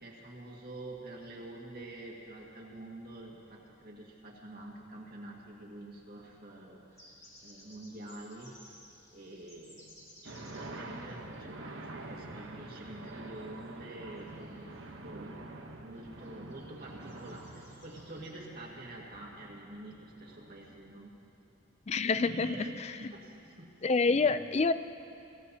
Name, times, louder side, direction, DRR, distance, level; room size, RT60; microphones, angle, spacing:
voice 1, 0.0-6.8 7.4-8.5 9.1-9.9 10.2-14.7 15.0-15.4 15.8-21.1 22.0-22.7 23.0-23.7 24.0-24.4, right 1 dB, 50° right, -3 dB, 1.9 m, -47 dB
sound 1, 6.9-11.4 12.1-15.0 15.3-15.4 16.0-18.3, left 1 dB, 15° left, 2.5 m, -58 dB
sound 2, 10.3-21.0, right 2 dB, 75° right, 1.1 m, -47 dB
voice 2, 21.9-22.6 23.8-24.7, left 4 dB, 30° left, 13 dB, 0.3 m, -27 dB
24.5 x 15.0 x 2.8 m, 2.7 s
head